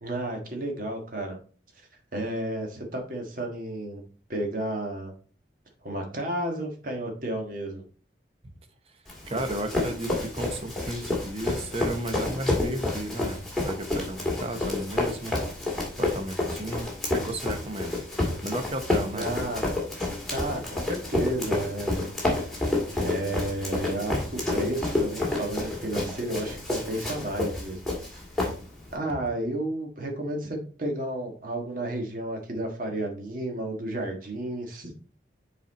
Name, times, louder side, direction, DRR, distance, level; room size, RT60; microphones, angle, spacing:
voice 1, 0.0-1.4 2.1-4.0 4.3-5.1 5.8-7.8 19.1-19.7 20.3-22.1 23.0-27.8 28.9-34.9, right 1 dB, 45° right, 2 dB, 1.6 m, -32 dB
Run, 9.1-28.9, left 2 dB, ahead, 2.0 m, -29 dB
voice 2, 9.3-15.4 16.0-18.0 18.4-19.3, right 1 dB, 30° right, 6 dB, 0.9 m, -34 dB
7.0 x 4.2 x 4.1 m, 0.40 s
head